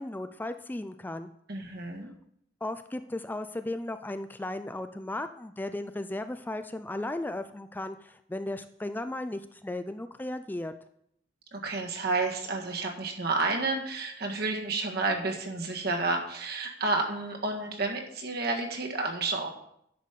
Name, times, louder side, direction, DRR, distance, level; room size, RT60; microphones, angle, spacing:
voice 1, 0.0-1.3 2.6-10.7, left 1 dB, 10° left, 9 dB, 0.3 m, -35 dB
voice 2, 1.5-2.1 11.5-19.5, right 3 dB, 55° right, 2 dB, 1.7 m, -30 dB
10.5 x 5.4 x 6.7 m, 0.73 s
head